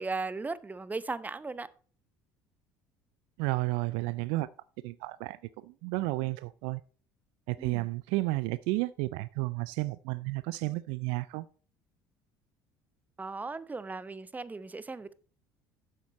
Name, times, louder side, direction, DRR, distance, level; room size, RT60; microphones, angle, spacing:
voice 1, 0.0-1.7 7.6-7.9 13.2-15.1, right 3 dB, 15° right, 0.7 m, -37 dB
voice 2, 3.4-4.5 4.8-6.8 7.5-11.5, right 20 dB, 70° right, 0.4 m, -32 dB
9.5 x 7.4 x 4.1 m
hypercardioid pair, 70°, 10 cm